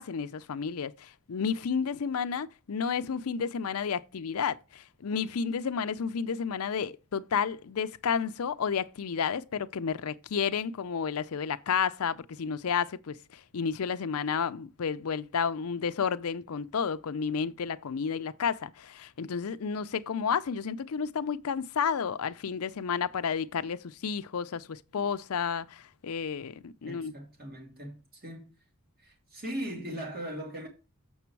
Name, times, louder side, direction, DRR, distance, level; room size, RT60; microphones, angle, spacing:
voice 1, 0.0-27.1, left 6 dB, 75° left, 0.5 m, -31 dB
voice 2, 26.9-28.5 29.0-30.7, right 1 dB, 45° right, 2.5 m, -39 dB
7.1 x 6.0 x 4.6 m
head